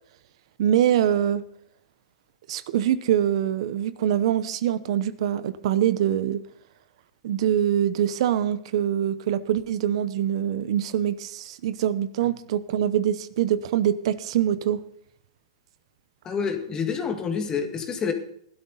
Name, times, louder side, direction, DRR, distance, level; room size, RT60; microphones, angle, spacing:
voice 1, 0.6-1.4 2.5-6.4 7.2-14.8, right 10 dB, 60° right, 14 dB, 0.8 m, -24 dB
voice 2, 16.2-18.1, left 6 dB, 20° left, 5 dB, 2.0 m, -28 dB
16.0 x 12.5 x 4.0 m, 0.68 s
hypercardioid pair, 145°, 3 cm